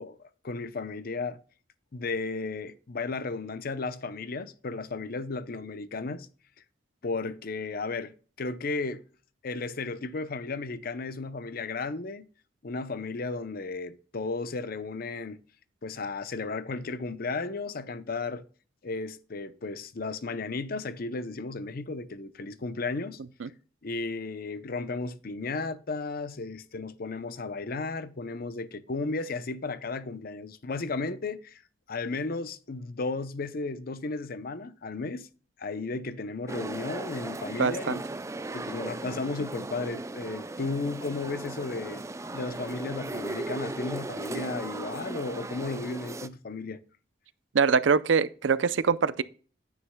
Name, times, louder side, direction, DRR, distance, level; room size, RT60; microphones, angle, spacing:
voice 1, 0.0-1.4 1.9-6.3 7.0-9.0 9.4-12.3 12.6-15.4 15.8-18.4 18.8-23.2 23.8-31.6 31.9-35.3 35.6-38.0 38.5-42.0 42.3-46.8, left 3 dB, 50° left, 0.6 m, -34 dB
sound 1, 36.5-46.3, right 2 dB, 15° right, 0.4 m, -37 dB
voice 2, 37.6-38.0 47.5-49.2, right 5 dB, 85° right, 0.5 m, -24 dB
9.6 x 9.4 x 2.2 m
head